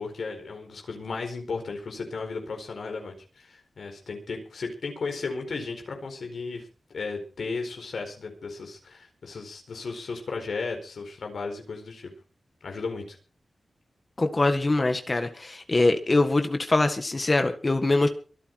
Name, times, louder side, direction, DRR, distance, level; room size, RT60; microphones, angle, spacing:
voice 1, 0.0-12.1 12.6-13.2, left 4 dB, 80° left, 3 dB, 4.4 m, -35 dB
voice 2, 14.2-18.1, left 2 dB, 35° left, 7 dB, 1.8 m, -23 dB
24.0 x 8.5 x 4.9 m, 0.37 s
cardioid pair, 60°, 0 cm